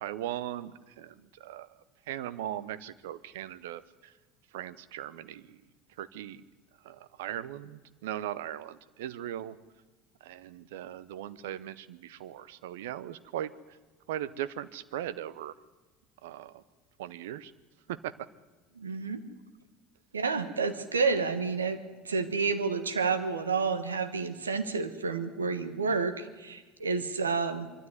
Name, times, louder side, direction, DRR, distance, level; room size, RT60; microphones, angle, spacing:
voice 1, 0.0-1.7 2.1-4.1 4.5-5.6 6.0-6.4 6.8-9.6 10.2-13.5 14.1-15.5 16.2-16.6 17.0-17.5 17.9-18.1, right 12 dB, 70° right, 16 dB, 0.8 m, -38 dB
voice 2, 18.7-19.2 20.1-21.8 22.0-27.7, right 4 dB, 90° right, 10 dB, 1.4 m, -30 dB
23.5 x 13.0 x 9.6 m, 1.3 s
hypercardioid pair, 70°, 0 cm